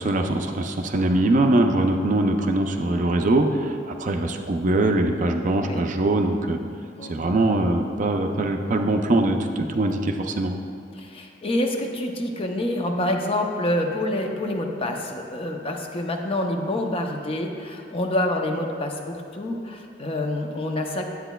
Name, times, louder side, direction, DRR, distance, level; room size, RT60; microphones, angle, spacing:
voice 1, 0.0-6.6 7.1-10.5, right 2 dB, 45° right, 5 dB, 0.4 m, -22 dB
voice 2, 11.0-21.1, left 1 dB, 30° left, 3 dB, 0.5 m, -27 dB
9.8 x 8.0 x 2.2 m, 2.3 s
head